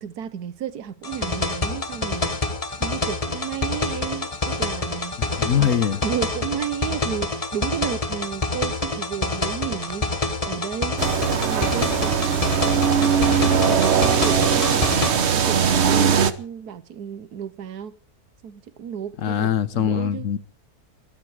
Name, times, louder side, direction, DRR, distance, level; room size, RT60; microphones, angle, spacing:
voice 1, 0.0-2.4 2.8-5.2 5.6-5.7 6.0-10.1 10.4-11.0 11.4-14.9 15.3-18.0 18.4-20.3, right 8 dB, 90° right, 1.5 m, -33 dB
sound 1, 1.0-15.1, left 3 dB, 25° left, 1.3 m, -27 dB
voice 2, 5.2-6.0 19.2-20.4, left 9 dB, 60° left, 1.2 m, -22 dB
sound 2, 11.0-16.3, right 7 dB, 50° right, 1.2 m, -20 dB
21.0 x 13.0 x 4.9 m
omnidirectional pair, 1.6 m